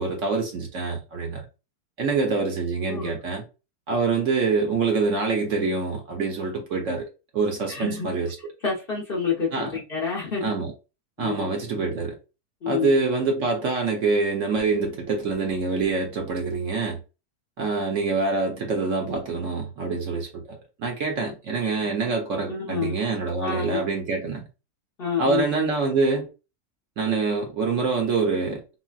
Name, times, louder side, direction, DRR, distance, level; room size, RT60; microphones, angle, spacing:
voice 1, 0.0-1.4 2.0-3.4 3.9-7.1 7.3-8.5 9.5-9.8 10.4-10.7 11.2-12.2 12.7-17.0 17.6-24.5 25.2-26.3 27.0-28.6, right 4 dB, 65° right, 0.9 m, -25 dB
voice 2, 7.7-8.1 8.6-10.5 11.2-11.5 12.6-12.9 22.5-22.9 23.4-23.9 25.0-25.4, left 6 dB, 50° left, 0.7 m, -28 dB
3.8 x 2.1 x 2.3 m
omnidirectional pair, 1.7 m